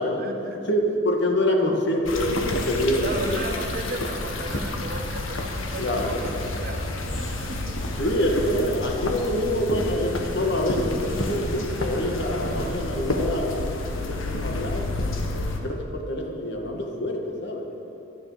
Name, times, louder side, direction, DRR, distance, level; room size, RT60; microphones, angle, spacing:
voice 1, 0.2-0.6 3.0-7.8 15.6-15.8, right 1 dB, 45° right, 3 dB, 1.5 m, -36 dB
voice 2, 0.7-3.4 5.8-6.2 8.0-14.9 15.3-17.7, left 1 dB, 60° left, 2 dB, 2.0 m, -26 dB
sound 1, 2.0-15.6, left 1 dB, 85° left, 1.7 m, -29 dB
24.5 x 9.9 x 5.1 m, 2.8 s
head